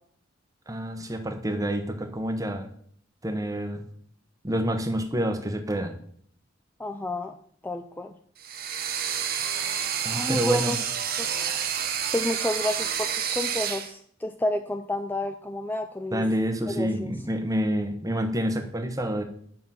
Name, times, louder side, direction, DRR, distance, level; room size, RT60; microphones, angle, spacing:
voice 1, 0.7-2.7 3.2-3.8 4.4-6.0 10.0-10.7 16.1-19.2, equal, 20° right, 6 dB, 1.0 m, -28 dB
voice 2, 6.8-7.3 7.6-8.1 10.1-10.8 11.2-11.6 12.1-16.2 16.7-17.1, left 1 dB, 10° left, 7 dB, 0.3 m, -30 dB
sound 1, 8.4-13.9, right 8 dB, 50° right, 0.9 m, -29 dB
7.6 x 5.7 x 5.7 m, 0.63 s
head